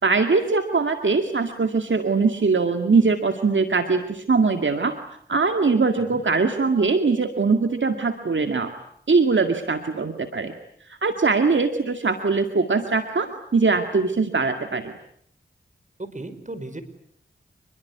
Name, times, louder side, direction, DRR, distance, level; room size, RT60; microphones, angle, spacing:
voice 1, 0.0-5.0 5.3-8.7 9.1-10.5 10.9-14.9, right 4 dB, 70° right, 6 dB, 2.1 m, -21 dB
voice 2, 16.0-16.8, right 2 dB, 40° right, 12 dB, 5.1 m, -35 dB
28.0 x 22.0 x 9.5 m, 0.68 s
cardioid pair, 40°, 20 cm